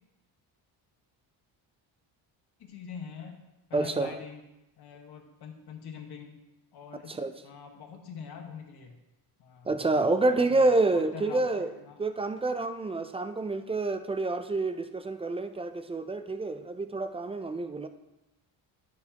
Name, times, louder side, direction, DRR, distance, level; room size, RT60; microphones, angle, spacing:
voice 1, 2.6-3.4 3.7-4.4 4.8-6.4 6.7-7.1 7.4-9.0 9.4-9.7 10.2-12.0, left 6 dB, 55° left, 3 dB, 1.4 m, -44 dB
voice 2, 3.7-4.1 7.1-7.3 9.7-11.7 12.0-17.9, right 2 dB, 15° right, 9 dB, 0.3 m, -28 dB
10.0 x 6.4 x 2.9 m, 0.96 s
cardioid pair, 105°, 47 cm